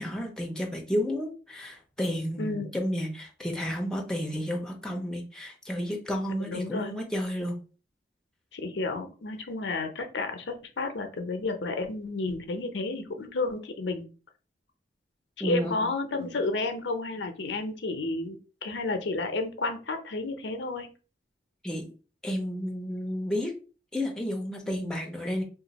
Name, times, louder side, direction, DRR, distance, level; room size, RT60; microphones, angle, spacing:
voice 1, 0.0-7.6 15.4-15.8 21.6-21.9 22.2-23.5 23.9-25.4, equal, 5° left, 1 dB, 0.6 m, -31 dB
voice 2, 2.4-2.7 6.5-6.9 8.5-14.1 15.4-20.9 24.7-24.9, left 3 dB, 85° left, 7 dB, 0.6 m, -31 dB
2.5 x 2.3 x 4.0 m, 0.35 s
head